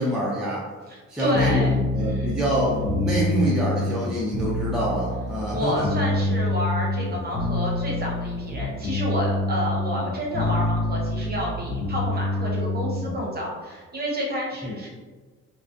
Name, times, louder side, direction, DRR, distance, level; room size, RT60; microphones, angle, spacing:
voice 1, 0.0-0.7 1.1-5.9 14.6-14.7, equal, ahead, -6 dB, 0.4 m, -26 dB
voice 2, 0.9-2.4 5.5-14.9, equal, 30° right, -3 dB, 0.8 m, -29 dB
sound 1, 1.3-13.2, left 2 dB, 50° left, 0.7 m, -26 dB
2.3 x 2.1 x 2.5 m, 1.3 s
cardioid pair, 90°, 30 cm